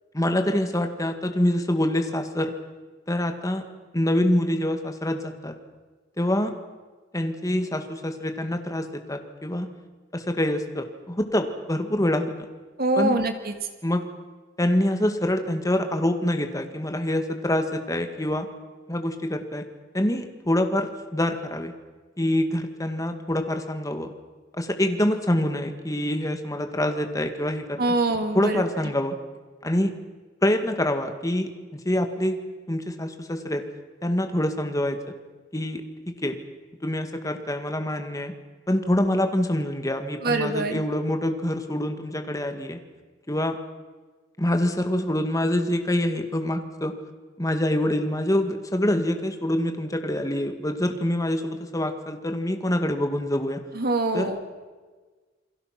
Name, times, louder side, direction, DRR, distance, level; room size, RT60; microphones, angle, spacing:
voice 1, 0.1-2.5 3.1-3.6 3.9-5.5 6.2-6.5 7.1-9.7 10.1-12.3 13.0-13.2 13.8-14.1 14.6-18.5 18.9-19.6 19.9-21.7 22.2-24.1 24.6-27.8 28.3-29.2 29.6-30.0 30.4-32.4 32.7-33.6 34.0-35.0 35.5-36.4 36.8-38.3 38.7-42.8 43.3-43.6 44.4-46.9 47.4-53.6 54.1-54.3, left 1 dB, 20° left, 6 dB, 2.0 m, -25 dB
voice 2, 12.8-13.5 27.8-28.9 40.2-40.8 53.7-54.4, right 2 dB, 55° right, 6 dB, 2.4 m, -24 dB
28.5 x 22.0 x 6.1 m, 1.4 s
head